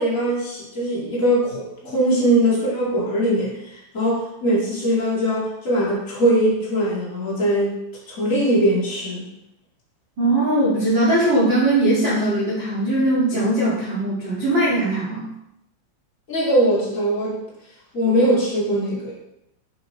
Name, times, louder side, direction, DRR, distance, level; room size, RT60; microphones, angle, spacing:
voice 1, 0.0-7.8 8.1-9.3 16.3-17.4 17.9-19.1, right 1 dB, 35° left, -7 dB, 1.3 m, -21 dB
voice 2, 10.2-15.3, right 1 dB, 45° right, -8 dB, 1.6 m, -20 dB
8.7 x 6.2 x 4.0 m, 0.83 s
omnidirectional pair, 5.8 m